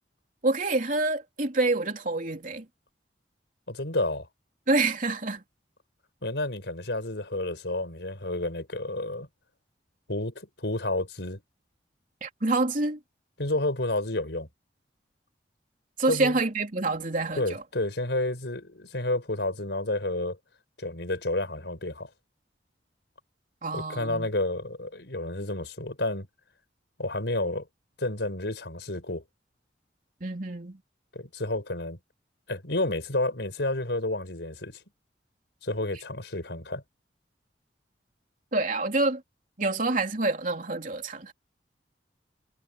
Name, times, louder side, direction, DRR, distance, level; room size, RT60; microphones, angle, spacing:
voice 1, 0.4-2.6 4.7-5.4 12.2-13.0 16.0-17.6 23.6-24.3 30.2-30.8 38.5-39.2 39.6-41.3, right 2 dB, 45° right, 3.3 m, -27 dB
voice 2, 3.7-4.3 6.2-9.3 10.1-11.4 13.4-14.5 16.1-16.4 17.4-20.4 20.8-22.1 23.7-26.3 27.0-27.7 28.0-29.2 31.1-32.0 32.5-34.8 35.6-36.8, left 2 dB, 75° left, 5.0 m, -30 dB
head